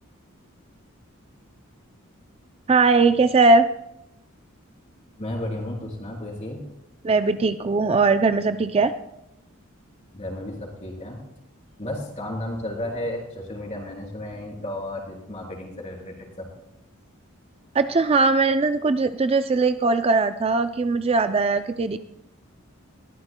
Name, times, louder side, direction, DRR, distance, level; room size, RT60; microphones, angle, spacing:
voice 1, 2.7-3.7 7.0-8.9 17.7-22.0, right 3 dB, 30° right, 10 dB, 0.4 m, -20 dB
voice 2, 5.2-6.6 10.1-11.2 11.8-16.5, left 1 dB, 30° left, 0 dB, 3.3 m, -33 dB
21.0 x 14.0 x 2.2 m, 0.82 s
head